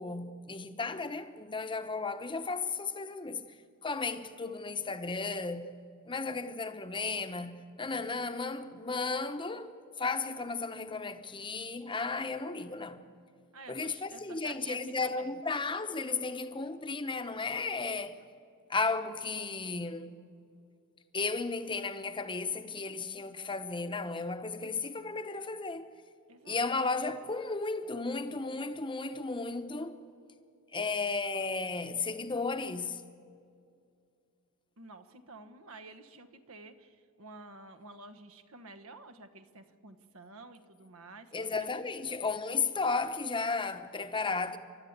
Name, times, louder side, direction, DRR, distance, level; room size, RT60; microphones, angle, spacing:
voice 1, 0.0-3.4 3.8-5.7 6.1-13.0 13.7-18.2 18.7-20.2 21.1-25.9 26.5-29.9 30.7-33.0 41.3-44.6, left 4 dB, 20° left, 0.9 m, -34 dB
voice 2, 13.5-15.4 26.3-26.6 34.8-41.3 41.6-41.7, right 3 dB, 70° right, 1.3 m, -50 dB
30.0 x 12.0 x 8.1 m
head